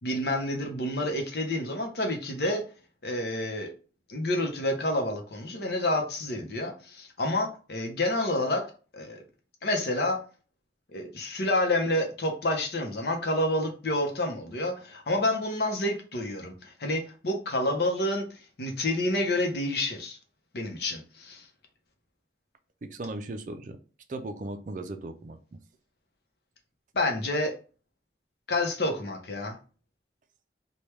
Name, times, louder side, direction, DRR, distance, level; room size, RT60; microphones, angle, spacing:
voice 1, 0.0-2.6 3.0-3.7 4.1-8.7 8.9-9.2 9.6-10.2 10.9-20.2 20.5-21.5 26.9-27.5 28.5-29.6, left 1 dB, 65° left, 3 dB, 0.7 m, -29 dB
voice 2, 22.8-23.8 24.1-25.6, right 2 dB, 45° right, 8 dB, 0.4 m, -37 dB
3.3 x 2.2 x 3.0 m, 0.36 s
head